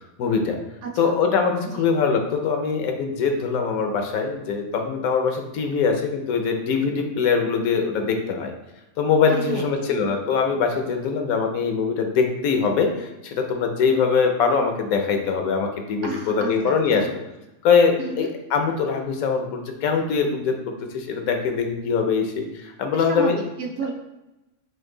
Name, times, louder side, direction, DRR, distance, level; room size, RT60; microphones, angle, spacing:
voice 1, 0.2-0.6 1.0-8.5 9.0-17.1 17.6-20.6 20.9-23.4, left 5 dB, 75° left, 4 dB, 1.1 m, -22 dB
voice 2, 0.8-1.1 1.7-1.9 9.3-10.0 16.0-17.1 18.0-18.3 22.9-23.9, right 4 dB, 65° right, 2 dB, 0.8 m, -32 dB
4.5 x 2.7 x 3.7 m, 0.98 s
omnidirectional pair, 1.5 m